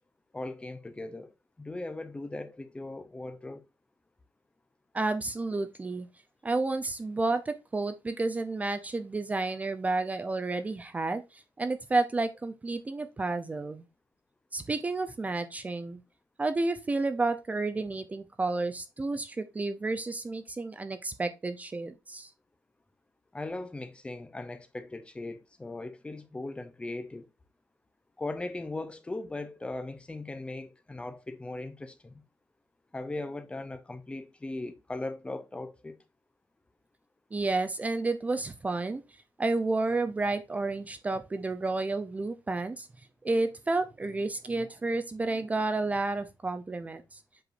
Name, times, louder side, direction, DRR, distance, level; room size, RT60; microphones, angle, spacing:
voice 1, 0.3-3.6 23.3-27.3 28.2-32.2 32.9-36.0, left 2 dB, 15° left, 0.7 m, -39 dB
voice 2, 4.9-6.1 6.4-13.8 14.5-16.0 16.4-22.3 37.3-39.0 39.4-42.9 43.2-47.2, right 3 dB, 20° right, 0.6 m, -31 dB
7.8 x 4.7 x 2.6 m
cardioid pair, 130°, 7 cm